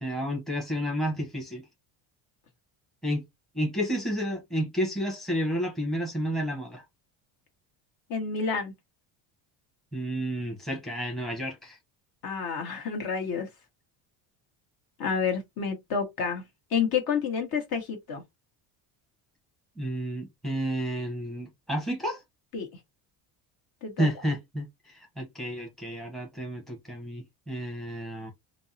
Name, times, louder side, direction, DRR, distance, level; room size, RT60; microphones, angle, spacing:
voice 1, 0.0-1.6 3.0-3.2 3.5-6.8 9.9-11.8 19.8-22.2 24.0-28.3, equal, ahead, 0.8 m, -31 dB
voice 2, 8.1-8.7 12.2-13.5 15.0-16.4 16.7-18.2 22.5-22.7 23.8-24.1, left 6 dB, 50° left, 1.2 m, -29 dB
3.4 x 2.1 x 2.6 m
cardioid pair, 125°, 45 cm